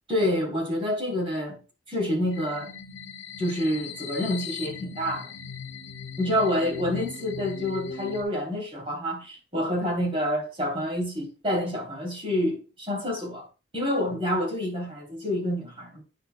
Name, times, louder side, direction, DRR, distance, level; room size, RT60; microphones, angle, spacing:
voice 1, 0.1-1.6 1.9-2.7 3.4-5.3 6.2-13.5 13.7-16.0, left 1 dB, 25° right, 3.2 m, -28 dB
sound 1, 2.3-8.2, left 5 dB, 60° left, 1.7 m, -39 dB
9.4 x 7.5 x 2.2 m
head